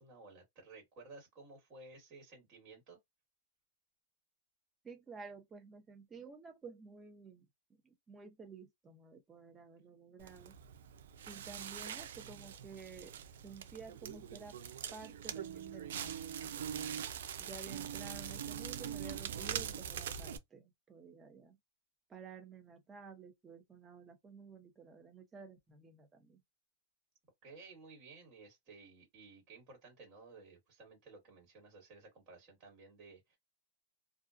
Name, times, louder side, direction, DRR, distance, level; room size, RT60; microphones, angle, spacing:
voice 1, 0.0-3.0 27.4-33.4, right 3 dB, 35° right, 1.6 m, -56 dB
voice 2, 4.8-10.6 11.3-13.1 13.4-14.6 14.9-16.8 17.4-21.6 22.1-26.4, right 5 dB, 15° right, 0.8 m, -52 dB
Crackle, 10.2-20.4, right 9 dB, 75° right, 0.4 m, -43 dB
2.4 x 2.2 x 2.4 m
hypercardioid pair, 140°, 0 cm